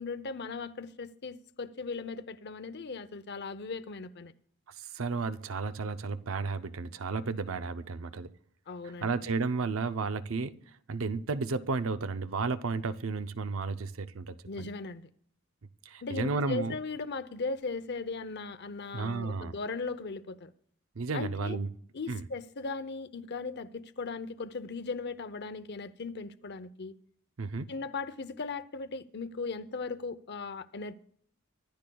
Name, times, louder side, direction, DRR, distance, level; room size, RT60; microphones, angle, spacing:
voice 1, 0.0-4.3 8.7-9.1 14.5-15.1 16.0-20.5 21.1-21.6 21.9-26.9 27.7-30.9, left 4 dB, 55° left, 0.7 m, -38 dB
voice 2, 4.8-8.3 9.0-10.6 10.9-14.7 15.9-16.8 18.9-19.6 21.0-21.7 22.1-22.2 27.4-27.7, right 4 dB, 70° right, 0.6 m, -33 dB
24.5 x 12.5 x 2.3 m
head